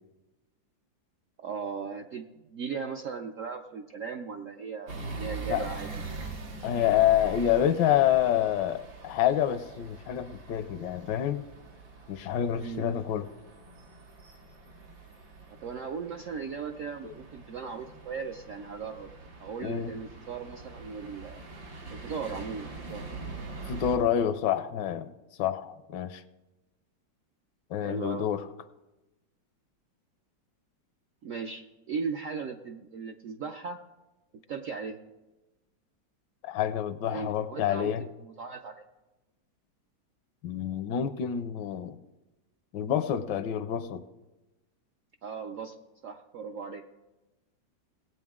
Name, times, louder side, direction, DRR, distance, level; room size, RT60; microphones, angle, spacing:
voice 1, 1.4-5.9 12.6-12.9 15.5-19.1 19.4-21.4 21.9-23.0 27.8-28.3 31.2-33.8 34.3-35.0 37.1-38.8 45.2-45.8 46.0-46.8, right 5 dB, 70° right, 4 dB, 0.7 m, -37 dB
sound 1, 4.9-24.0, right 3 dB, 90° right, 2.5 m, -43 dB
voice 2, 6.6-11.5 12.1-13.3 17.0-17.1 19.6-19.9 23.7-25.1 25.4-26.2 27.7-28.4 36.4-38.1 40.4-42.0 42.7-44.0, left 10 dB, 75° left, 12 dB, 1.2 m, -27 dB
18.5 x 8.5 x 3.6 m, 1.1 s
omnidirectional pair, 2.0 m